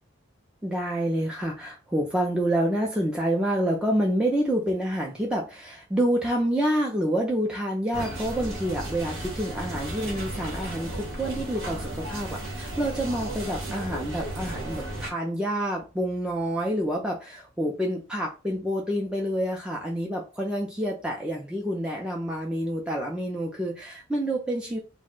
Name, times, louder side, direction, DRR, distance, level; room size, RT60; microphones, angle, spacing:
voice 1, 0.6-24.8, right 1 dB, 5° right, 0.4 m, -28 dB
sound 1, 7.9-15.1, right 1 dB, 75° right, 1.0 m, -34 dB
2.4 x 2.0 x 3.6 m
head